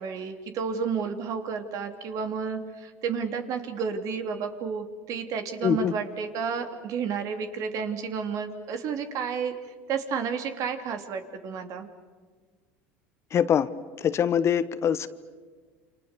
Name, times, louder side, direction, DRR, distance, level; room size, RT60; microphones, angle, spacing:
voice 1, 0.0-9.5 9.9-11.9, right 6 dB, 55° right, 6 dB, 3.1 m, -31 dB
voice 2, 5.6-5.9 13.3-13.7 14.0-15.1, left 8 dB, 40° left, 14 dB, 1.1 m, -23 dB
29.0 x 27.5 x 6.8 m, 1.5 s
supercardioid pair, 100°, 7 cm